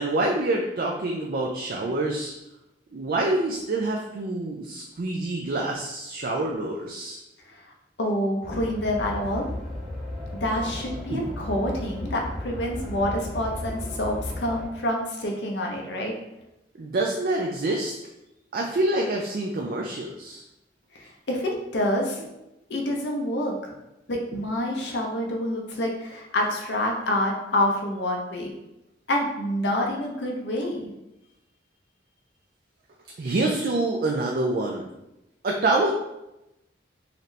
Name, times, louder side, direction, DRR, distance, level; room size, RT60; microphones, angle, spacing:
voice 1, 0.0-2.3 2.9-7.2 11.1-11.3 16.8-17.9 18.5-20.4 33.2-34.8 35.4-35.9, right 2 dB, 55° right, 0 dB, 0.4 m, -26 dB
voice 2, 8.0-9.5 10.3-16.1 20.9-22.2 22.7-23.7 24.1-28.5 29.1-30.9, left 1 dB, 75° left, 0 dB, 0.7 m, -27 dB
sound 1, 8.4-14.7, left 1 dB, ahead, 1.3 m, -35 dB
4.2 x 2.6 x 3.1 m, 0.91 s
head